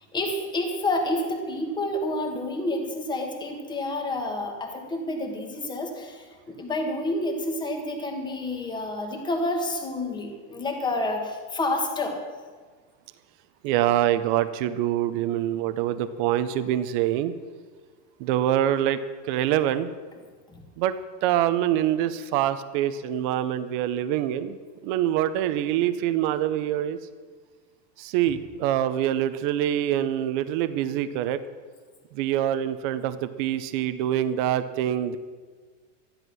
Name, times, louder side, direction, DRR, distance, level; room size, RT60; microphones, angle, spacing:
voice 1, 0.1-12.2 20.5-20.6, left 2 dB, 10° left, 3 dB, 1.5 m, -29 dB
voice 2, 13.6-17.3 18.2-19.0 19.3-19.9 20.8-20.9 21.2-24.6 24.8-27.0 28.0-31.4 32.1-35.2, right 11 dB, 40° right, 12 dB, 0.6 m, -25 dB
13.0 x 11.0 x 6.2 m, 1.5 s
supercardioid pair, 170°, 39 cm